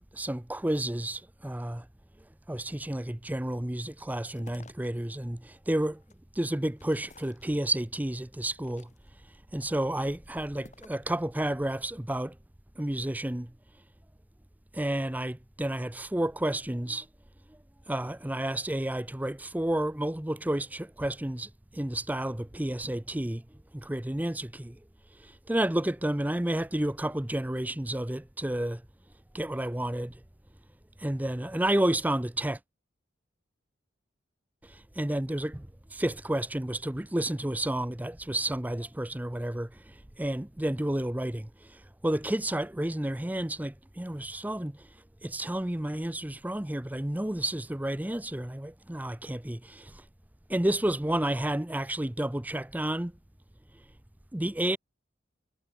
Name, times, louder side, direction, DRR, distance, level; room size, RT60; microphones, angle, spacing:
voice 1, 0.1-1.8 2.5-6.0 6.4-8.9 9.5-12.3 12.8-13.5 14.7-17.1 17.9-23.4 23.7-24.8 25.5-28.8 29.3-30.2 31.0-32.6 34.7-44.8 45.2-50.0 50.5-53.1 54.3-54.8, right 1 dB, 10° right, 0.6 m, -31 dB
sound 1, 3.9-5.1 5.6-7.9 8.4-9.3 9.8-11.1, left 2 dB, 40° left, 3.7 m, -55 dB
head